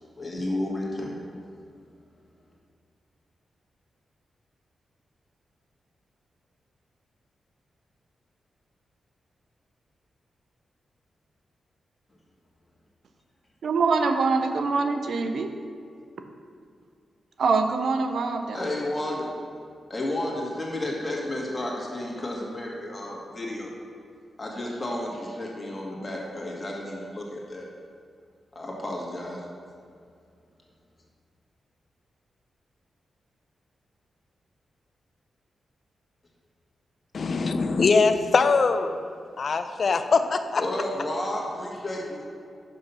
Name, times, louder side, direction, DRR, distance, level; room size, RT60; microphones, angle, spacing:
voice 1, 0.2-1.2 18.5-19.3 19.9-23.7 24.4-27.7 28.5-29.5 40.6-42.2, left 1 dB, 30° left, -2 dB, 1.7 m, -32 dB
voice 2, 13.6-15.5 17.4-18.6, right 4 dB, 70° right, 6 dB, 0.6 m, -24 dB
voice 3, 37.1-39.0 39.4-40.6, left 4 dB, 60° left, 9 dB, 0.5 m, -22 dB
5.7 x 5.4 x 5.5 m, 2.3 s
cardioid pair, 60°, 0 cm